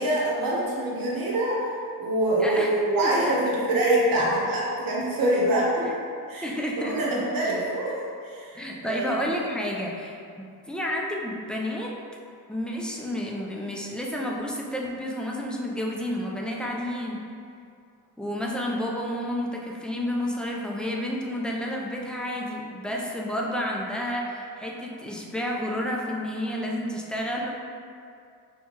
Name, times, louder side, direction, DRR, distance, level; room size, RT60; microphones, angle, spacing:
voice 1, 0.0-1.7 2.0-5.8 6.3-8.0 8.2-9.0, right 1 dB, 60° right, -5 dB, 0.9 m, -25 dB
voice 2, 2.4-2.7 3.0-3.4 5.8-6.0 6.4-7.2 8.5-12.0 12.5-17.2 18.2-27.5, equal, ahead, -2 dB, 0.3 m, -30 dB
4.4 x 2.3 x 2.8 m, 2.4 s
cardioid pair, 95°, 38 cm